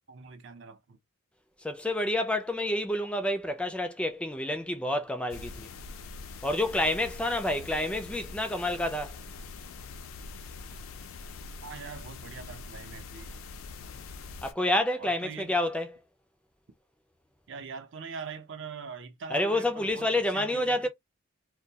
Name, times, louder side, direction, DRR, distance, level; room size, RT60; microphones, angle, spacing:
voice 1, 0.1-1.0 11.6-13.4 15.0-15.6 17.5-20.9, right 5 dB, 60° right, 0.6 m, -42 dB
voice 2, 1.6-5.7 6.4-9.2 14.4-15.9 19.3-20.9, left 1 dB, 5° left, 0.3 m, -28 dB
sound 1, 5.3-14.5, left 4 dB, 75° left, 0.4 m, -43 dB
2.2 x 2.1 x 2.7 m
head